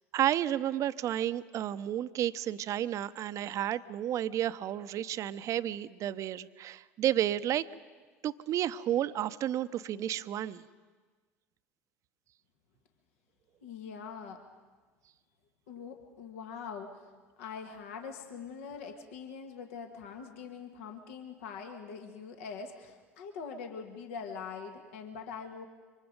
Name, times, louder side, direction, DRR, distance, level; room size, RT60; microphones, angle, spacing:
voice 1, 0.1-7.7 8.2-10.6, right 11 dB, 45° right, 13 dB, 0.7 m, -31 dB
voice 2, 13.6-14.4 15.7-17.1 17.4-25.7, left 6 dB, 70° left, 5 dB, 1.7 m, -43 dB
27.0 x 24.5 x 5.2 m, 1.4 s
hypercardioid pair, 70°, 7 cm